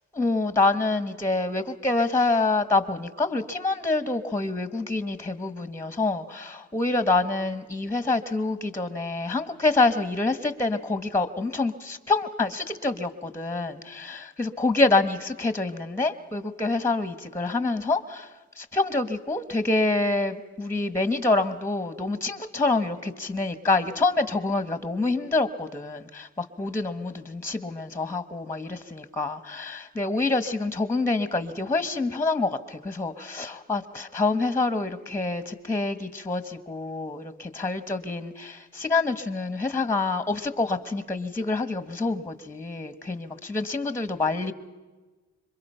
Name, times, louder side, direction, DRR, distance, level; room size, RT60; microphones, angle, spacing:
voice 1, 0.1-18.3 18.6-44.5, left 3 dB, 10° left, 12 dB, 1.2 m, -26 dB
26.0 x 23.0 x 5.6 m, 1.3 s
cardioid pair, 90°, 30 cm